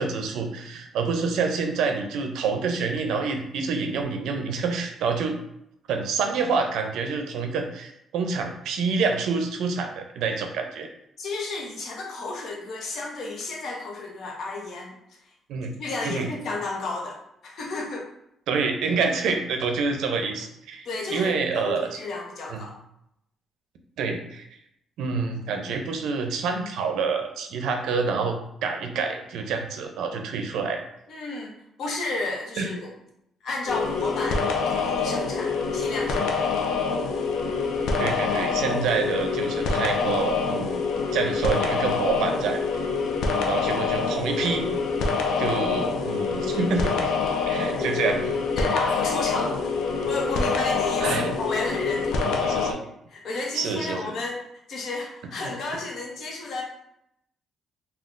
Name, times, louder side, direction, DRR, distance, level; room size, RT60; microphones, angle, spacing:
voice 1, 0.0-5.4 5.9-10.9 15.5-15.7 16.0-16.3 18.5-21.9 22.5-22.7 24.0-24.4 25.0-30.8 32.6-32.7 38.0-40.8 41.1-42.8 43.3-44.7 45.4-47.1 47.5-48.2 51.0-51.3 52.3-52.8 53.5-54.1 55.4-55.5, right 4 dB, 85° right, 4 dB, 0.4 m, -27 dB
voice 2, 11.2-15.0 15.8-18.1 20.9-22.7 31.1-32.9 33.4-36.8 47.7-47.9 48.6-49.7 50.1-52.2 52.8-54.4 54.7-56.6, left 3 dB, 65° left, -1 dB, 0.8 m, -32 dB
sound 1, 33.7-52.7, left 4 dB, 85° left, 0.4 m, -26 dB
3.6 x 2.2 x 2.4 m, 0.78 s
cardioid pair, 90°, 0 cm